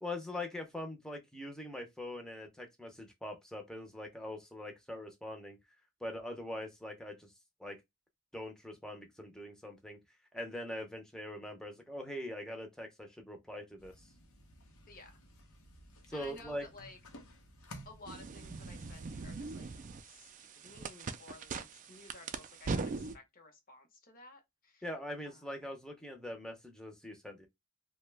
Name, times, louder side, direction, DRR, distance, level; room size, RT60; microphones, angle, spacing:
voice 1, 0.0-5.6 6.0-7.3 7.6-7.8 8.3-10.0 10.3-13.9 16.1-16.7 24.8-27.5, left 1 dB, 5° left, 0.6 m, -42 dB
sound 1, 13.8-20.3, left 1 dB, 80° left, 0.8 m, -56 dB
voice 2, 16.1-17.0 17.8-19.7 20.0-24.8 25.2-25.4, left 3 dB, 40° left, 0.9 m, -54 dB
sound 2, 18.1-23.2, right 4 dB, 35° right, 0.3 m, -41 dB
2.8 x 2.2 x 3.2 m
head